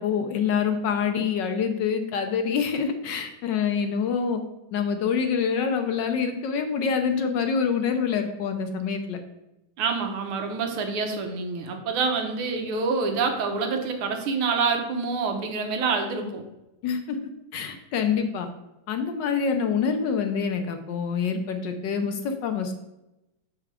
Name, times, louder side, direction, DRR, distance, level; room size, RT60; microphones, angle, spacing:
voice 1, 0.0-4.4 4.7-9.2 16.8-17.2 17.5-18.5 18.9-22.7, left 6 dB, 70° left, 6 dB, 1.2 m, -26 dB
voice 2, 9.8-16.4, right 4 dB, 85° right, 4 dB, 1.9 m, -27 dB
6.7 x 4.9 x 4.7 m, 0.93 s
omnidirectional pair, 2.3 m